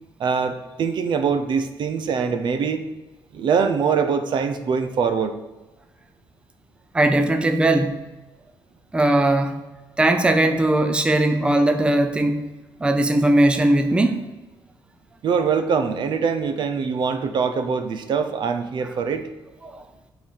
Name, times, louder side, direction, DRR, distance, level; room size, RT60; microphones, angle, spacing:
voice 1, 0.2-2.8 3.3-5.3 15.2-19.3, right 6 dB, 60° right, 8 dB, 0.7 m, -23 dB
voice 2, 6.9-8.1 8.9-9.7 10.0-12.5 12.8-14.3 19.6-19.8, right 1 dB, 10° right, 7 dB, 0.6 m, -19 dB
6.9 x 4.0 x 6.4 m, 1.1 s
cardioid pair, 125°, 9 cm